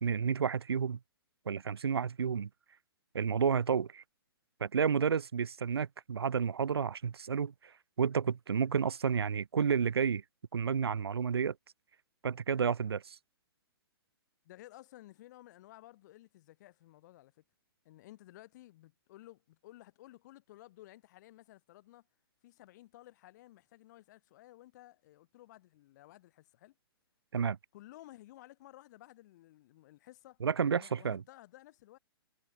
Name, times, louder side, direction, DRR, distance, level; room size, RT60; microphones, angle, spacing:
voice 1, 0.0-1.0 1.5-2.5 3.1-4.0 4.6-7.5 8.0-10.2 10.5-11.5 12.2-13.2 27.3-27.6 30.4-31.2, right 6 dB, 80° right, 0.5 m, -31 dB
voice 2, 14.5-17.4 17.9-22.1 22.4-26.8 27.7-30.4 30.7-32.0, left 16 dB, 45° left, 1.8 m, -55 dB
figure-of-eight pair, 120°, 13 cm